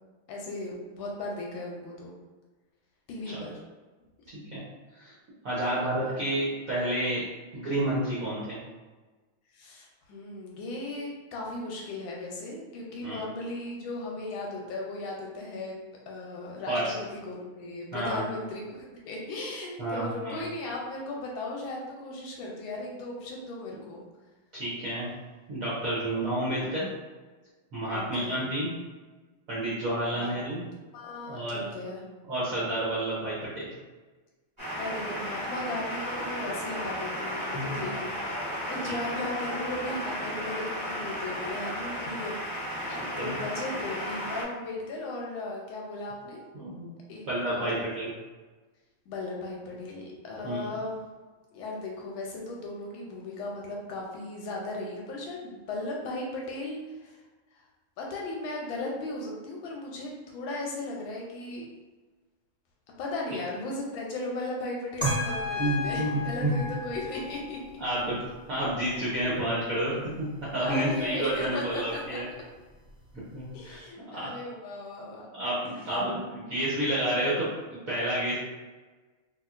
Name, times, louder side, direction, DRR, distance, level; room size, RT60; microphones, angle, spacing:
voice 1, 0.3-2.1 3.1-3.6 5.5-5.7 6.1-6.2 9.5-15.8 16.1-24.0 27.9-28.4 30.1-30.3 30.9-32.0 34.8-38.2 38.7-42.4 42.7-46.4 47.1-47.3 47.5-47.8 49.1-51.0 51.5-57.2 57.6-57.7 58.0-61.7 63.0-67.6 69.0-69.2 70.6-72.2 73.5-75.2 75.6-76.0, left 2 dB, 75° left, -2 dB, 1.3 m, -37 dB
voice 2, 5.4-7.2 7.5-8.6 13.0-13.2 16.7-16.8 17.9-18.2 19.8-20.4 24.5-25.1 25.5-26.9 27.7-28.7 29.5-30.6 31.3-31.6 32.3-33.5 37.5-37.7 43.2-43.4 46.5-47.0 47.2-48.1 50.4-50.7 65.6-66.7 67.8-68.1 68.5-72.3 73.3-73.8 74.1-74.3 75.3-78.4, right 1 dB, 65° right, -9 dB, 0.8 m, -30 dB
sound 1, 34.6-44.4, equal, 25° right, 1.2 m, -34 dB
Trumpet, 65.0-67.7, left 5 dB, 55° left, 1.1 m, -35 dB
sound 2, 65.0-73.8, right 2 dB, 10° left, 0.5 m, -40 dB
3.2 x 2.8 x 2.4 m, 1.3 s
omnidirectional pair, 2.4 m